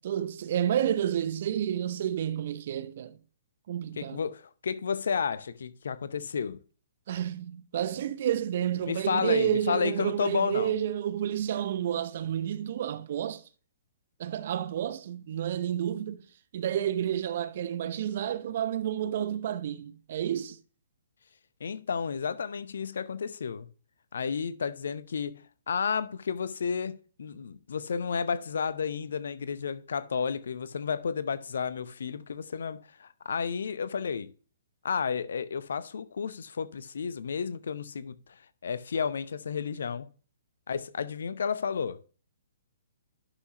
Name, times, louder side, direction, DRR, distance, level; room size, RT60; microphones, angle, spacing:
voice 1, 0.0-3.2 3.7-4.2 7.1-13.4 14.2-16.2 16.5-20.6, right 10 dB, 50° right, 0.8 m, -30 dB
voice 2, 4.0-6.6 8.9-10.7 21.6-23.7 24.1-34.3 34.8-40.1 40.7-42.0, left 6 dB, 60° left, 0.7 m, -32 dB
11.0 x 5.9 x 2.9 m
figure-of-eight pair, 120°, 0 cm